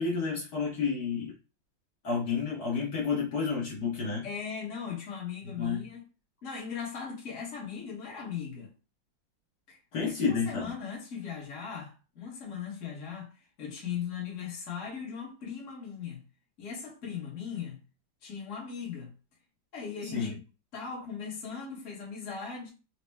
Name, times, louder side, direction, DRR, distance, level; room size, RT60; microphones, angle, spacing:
voice 1, 0.0-1.3 2.0-4.3 5.4-5.8 9.9-10.7 20.0-20.3, left 5 dB, 60° left, 1.4 m, -30 dB
voice 2, 4.2-6.0 6.4-8.7 9.7-9.8 10.0-16.2 16.6-17.8 18.2-19.1 19.7-20.4 20.7-22.7, left 7 dB, 45° left, 1.3 m, -38 dB
4.2 x 2.1 x 3.3 m
omnidirectional pair, 2.2 m